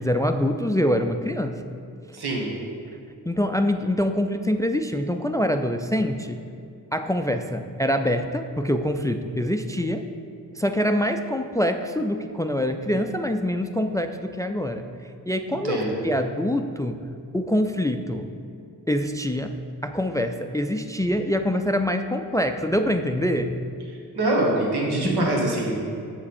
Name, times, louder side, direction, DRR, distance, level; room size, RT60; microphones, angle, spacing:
voice 1, 0.0-1.6 3.3-6.4 6.9-10.1 10.6-14.8 15.3-15.8 16.0-17.0 17.3-18.3 18.9-23.6 25.0-25.3, equal, 10° left, 7 dB, 0.3 m, -25 dB
voice 2, 2.1-2.5 15.5-16.0 24.1-25.7, right 2 dB, 80° right, -2 dB, 1.6 m, -24 dB
7.4 x 7.2 x 4.3 m, 2.5 s
cardioid pair, 65°, 38 cm